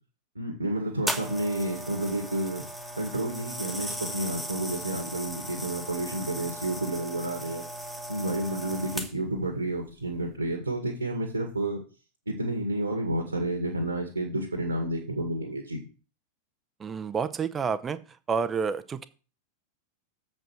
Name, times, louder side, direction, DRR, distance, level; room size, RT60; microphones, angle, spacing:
voice 1, 0.4-2.6 3.0-7.6 8.1-11.8 12.3-15.8, right 1 dB, 80° right, 3 dB, 2.0 m, -30 dB
sound 1, 1.1-9.4 10.1-10.3, right 1 dB, ahead, 1.4 m, -37 dB
voice 2, 16.8-18.0 18.3-19.1, right 6 dB, 20° right, 13 dB, 0.7 m, -29 dB
7.5 x 5.3 x 6.5 m, 0.35 s
figure-of-eight pair, 90°, 0 cm